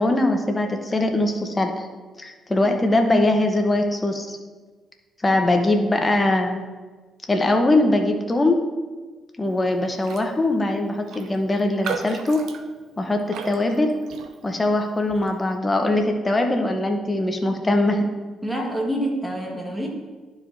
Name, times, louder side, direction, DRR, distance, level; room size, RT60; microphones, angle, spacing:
voice 1, 0.0-1.9 2.2-4.4 5.2-6.6 7.3-8.6 9.4-12.4 13.0-13.2 13.4-13.9 14.4-18.1, left 2 dB, 20° left, 3 dB, 1.0 m, -21 dB
Raindrop, 10.0-10.3 10.6-10.7 11.1-14.6 15.1-15.4, right 6 dB, 80° right, 0.6 m, -35 dB
voice 2, 18.4-19.9, right 1 dB, 5° right, -1 dB, 1.7 m, -26 dB
11.5 x 4.9 x 2.8 m, 1.4 s
cardioid pair, 90°, 0 cm